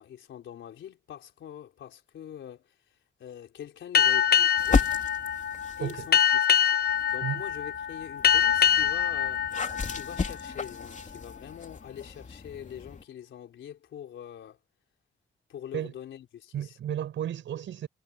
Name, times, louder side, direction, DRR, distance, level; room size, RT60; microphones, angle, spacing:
voice 1, 0.0-4.9 5.8-6.6 7.1-9.6 9.9-14.6 15.5-16.8, left 10 dB, 90° left, 4.0 m, -44 dB
Boat Water vehicle, 3.9-11.0, left 8 dB, 55° left, 0.9 m, -25 dB
sound 1, 4.6-6.2 6.8-13.0, left 4 dB, 40° left, 3.1 m, -34 dB
voice 2, 16.5-17.9, right 10 dB, 90° right, 7.7 m, -33 dB
cardioid pair, 75°, 19 cm